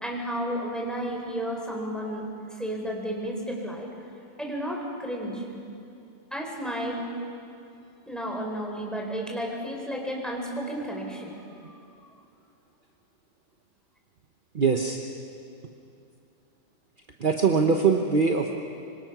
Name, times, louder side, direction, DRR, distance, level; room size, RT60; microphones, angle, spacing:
voice 1, 0.0-2.2 2.5-3.9 4.4-5.4 6.3-7.1 8.1-11.8, equal, ahead, -1 dB, 4.1 m, -32 dB
voice 2, 14.5-15.0 17.2-18.6, right 5 dB, 35° right, 3 dB, 0.9 m, -22 dB
25.5 x 25.0 x 6.1 m, 2.7 s
omnidirectional pair, 2.1 m